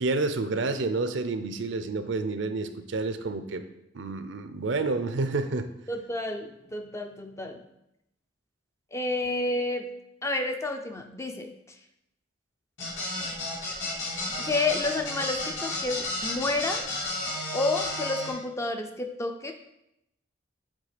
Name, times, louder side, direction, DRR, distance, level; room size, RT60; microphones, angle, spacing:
voice 1, 0.0-3.6 3.9-5.7, right 3 dB, 65° right, 9 dB, 0.5 m, -29 dB
voice 2, 5.9-7.6 8.9-9.9 10.2-11.5 14.4-16.9 17.5-19.5, left 2 dB, 15° left, 5 dB, 0.5 m, -30 dB
sound 1, 12.8-18.3, left 1 dB, 75° left, 2.7 m, -32 dB
7.5 x 3.7 x 5.0 m, 0.84 s
head